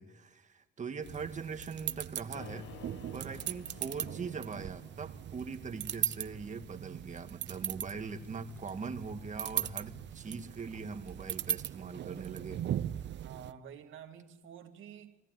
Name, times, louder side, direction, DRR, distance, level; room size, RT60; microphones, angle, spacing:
voice 1, 0.0-2.7 3.1-12.6, right 5 dB, 40° right, 7 dB, 1.9 m, -41 dB
sound 1, 1.0-13.5, right 11 dB, 65° right, 0.7 m, -39 dB
sound 2, 2.3-6.4, left 13 dB, 75° left, 0.7 m, -54 dB
sound 3, 7.6-8.9 9.6-11.6 12.3-13.4, equal, 10° left, 4.3 m, -68 dB
voice 2, 13.2-15.2, right 8 dB, 80° right, 6 dB, 2.1 m, -49 dB
21.5 x 17.0 x 9.4 m, 1.1 s
cardioid pair, 90°, 20 cm